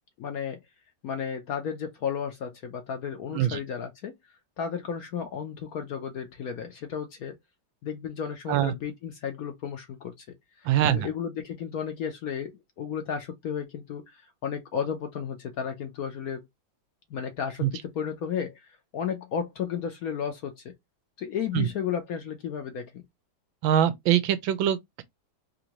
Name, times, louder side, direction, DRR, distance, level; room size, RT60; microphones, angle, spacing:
voice 1, 0.2-0.6 1.0-4.2 4.6-7.4 7.8-16.5 17.1-20.7 21.2-23.0, left 7 dB, 65° left, 1.0 m, -33 dB
voice 2, 10.6-11.1 17.6-17.7 21.5-21.7 23.6-25.0, right 11 dB, 85° right, 1.4 m, -23 dB
3.7 x 2.6 x 2.9 m
omnidirectional pair, 2.1 m